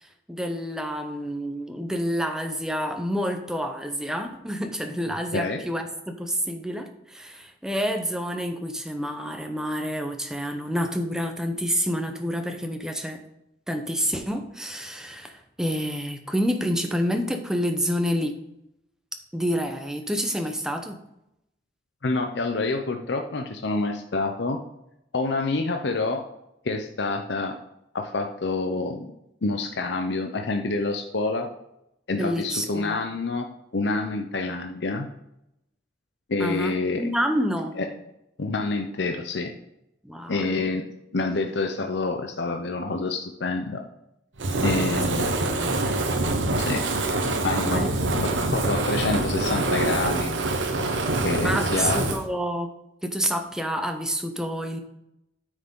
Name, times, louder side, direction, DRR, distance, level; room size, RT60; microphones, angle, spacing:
voice 1, 0.0-13.2 13.7-18.4 19.3-21.0 32.1-33.0 36.4-37.7 40.0-40.5 44.9-45.0 45.3-45.7 47.6-48.0 48.3-48.5 51.4-52.7 53.0-54.8, equal, 5° right, 5 dB, 0.8 m, -28 dB
voice 2, 22.0-24.6 25.1-26.2 26.6-27.6 27.9-29.1 29.4-31.5 32.1-33.5 33.7-35.1 36.3-37.0 37.8-37.9 38.4-39.5 40.3-40.8 41.1-43.8 44.6-45.1 46.6-46.9 47.4-50.3 51.2-52.0, left 3 dB, 65° left, 5 dB, 0.7 m, -27 dB
Fire, 44.4-52.2, right 2 dB, 80° right, 1.0 m, -25 dB
9.4 x 6.3 x 3.7 m, 0.83 s
head